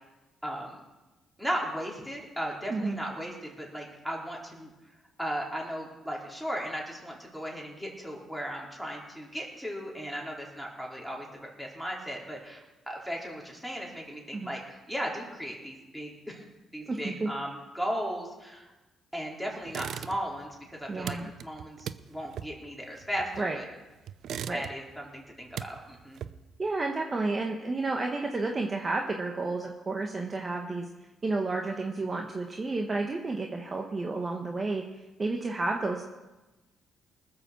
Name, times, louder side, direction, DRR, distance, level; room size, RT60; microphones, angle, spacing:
voice 1, 0.4-0.8 1.4-4.7 5.2-16.4 16.7-18.6 19.1-23.7 24.4-26.2, equal, ahead, -3 dB, 4.1 m, -36 dB
voice 2, 2.7-3.0 14.3-14.5 16.9-17.3 20.9-21.3 23.4-23.6 24.5-24.6 26.6-30.9 31.2-36.1, right 3 dB, 30° right, 2 dB, 1.3 m, -31 dB
sound 1, 19.7-20.5 20.7-23.6 24.1-25.0 25.3-26.6, right 9 dB, 70° right, 0.5 m, -39 dB
20.0 x 6.9 x 7.0 m, 1.1 s
cardioid pair, 90°, 0 cm